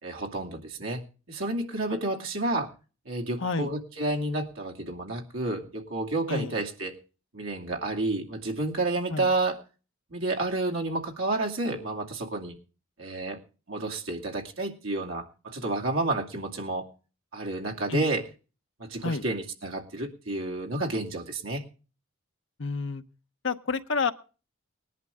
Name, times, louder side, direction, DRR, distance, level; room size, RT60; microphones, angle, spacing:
voice 1, 0.0-1.0 1.3-2.7 3.1-6.9 7.3-9.6 10.1-12.5 13.0-13.4 13.7-16.9 17.3-18.2 18.8-21.6, right 2 dB, 70° right, 2 dB, 2.4 m, -30 dB
voice 2, 3.4-3.7 6.3-6.5 9.1-9.3 17.9-18.0 19.0-19.2 22.6-23.0 23.4-24.1, left 4 dB, 60° left, 8 dB, 0.9 m, -29 dB
19.0 x 11.0 x 3.6 m, 0.35 s
head